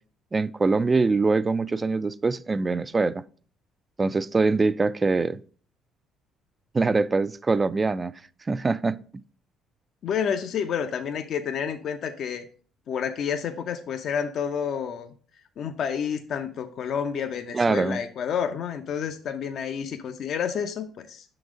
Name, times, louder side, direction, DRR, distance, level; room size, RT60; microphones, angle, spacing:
voice 1, 0.3-3.2 4.0-5.4 6.7-8.1 8.5-9.0 17.5-18.0, right 3 dB, 25° right, 0.4 m, -23 dB
voice 2, 10.0-12.4 12.9-15.1 15.6-21.2, left 7 dB, 60° left, 0.6 m, -29 dB
6.1 x 3.9 x 4.9 m
supercardioid pair, 75°, 0 cm